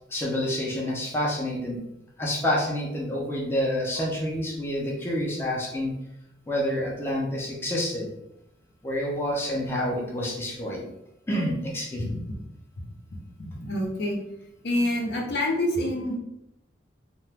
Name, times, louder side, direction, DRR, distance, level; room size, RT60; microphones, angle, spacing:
voice 1, 0.1-1.8 2.2-5.9 6.5-8.1 8.8-10.9 11.3-12.2, left 1 dB, 15° left, -3 dB, 0.5 m, -28 dB
voice 2, 13.4-14.2 14.6-16.2, left 1 dB, 65° left, 0 dB, 0.6 m, -27 dB
2.8 x 2.2 x 3.3 m, 0.85 s
head